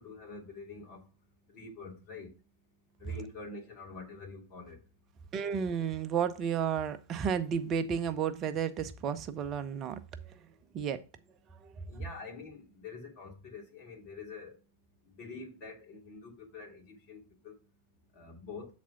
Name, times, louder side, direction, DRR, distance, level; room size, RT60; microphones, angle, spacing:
voice 1, 0.0-2.4 2.7-5.3 10.1-10.8 11.5-18.7, left 4 dB, 40° left, 3.0 m, -47 dB
voice 2, 5.3-10.0 10.2-10.4 10.7-11.0 11.6-11.7, right 7 dB, 35° right, 0.8 m, -32 dB
7.3 x 4.2 x 5.8 m
figure-of-eight pair, 90°, 0 cm